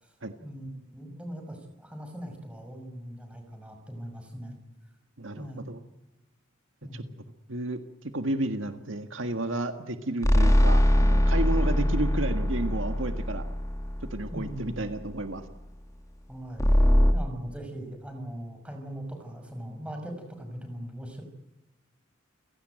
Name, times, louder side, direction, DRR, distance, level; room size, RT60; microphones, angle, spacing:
voice 1, 0.4-4.6 5.4-5.7 6.8-7.2 14.3-14.9 16.3-16.7 17.1-21.2, equal, 5° right, 5 dB, 5.8 m, -40 dB
voice 2, 5.2-5.8 6.9-7.0 7.5-13.5 14.1-15.4, right 1 dB, 65° right, 8 dB, 1.8 m, -32 dB
sound 1, 10.2-14.7 16.6-17.1, equal, 15° left, 2.0 m, -22 dB
30.0 x 17.5 x 9.2 m, 0.97 s
head